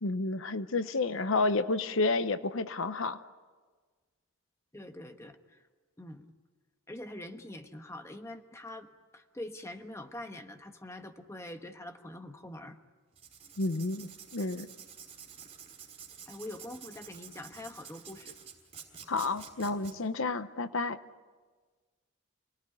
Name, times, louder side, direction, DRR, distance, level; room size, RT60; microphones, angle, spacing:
voice 1, 0.0-3.2 13.6-14.7 19.1-21.0, left 3 dB, 70° left, 12 dB, 0.9 m, -30 dB
voice 2, 4.7-5.6 6.0-6.3 6.9-12.8 16.3-18.4, left 1 dB, 15° left, 6 dB, 1.2 m, -44 dB
Writing, 13.1-19.9, right 7 dB, 30° right, 5.4 m, -49 dB
28.5 x 18.5 x 9.8 m, 1.4 s
head